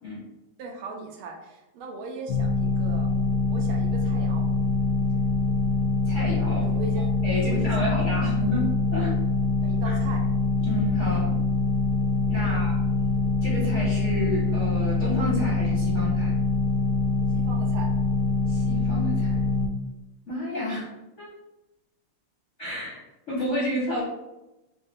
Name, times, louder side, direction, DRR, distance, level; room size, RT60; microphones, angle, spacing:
voice 1, 0.6-3.2 3.5-4.5 6.5-7.1 7.4-8.1 9.6-10.2 12.4-12.6 17.3-17.9, right 3 dB, 80° right, 2 dB, 1.4 m, -39 dB
sound 1, 2.3-19.7, left 3 dB, 80° left, 1.4 m, -24 dB
voice 2, 6.0-6.6 7.0-8.6 8.9-9.1 9.8-9.9 10.6-11.4 12.3-12.8 13.4-16.3 18.5-19.4 20.3-20.9 21.2-21.3 22.6-24.0, left 1 dB, 55° left, -7 dB, 0.8 m, -30 dB
4.3 x 2.1 x 3.4 m, 0.97 s
omnidirectional pair, 2.4 m